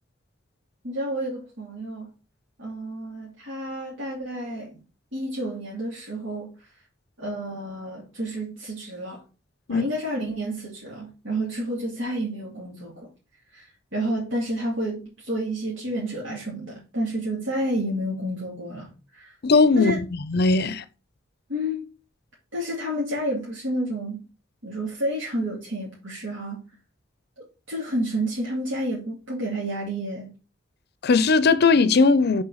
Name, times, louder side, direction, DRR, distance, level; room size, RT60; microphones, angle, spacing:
voice 1, 0.8-2.1 2.6-4.8 5.1-6.5 7.2-9.2 9.7-13.1 13.5-19.4 19.7-20.0 21.5-21.9 22.5-24.2 24.6-26.6 27.7-30.3, right 1 dB, 80° right, 2.6 m, -30 dB
voice 2, 19.4-19.9 20.3-20.8 31.0-32.4, left 4 dB, 55° left, 0.5 m, -18 dB
6.2 x 4.4 x 6.2 m
head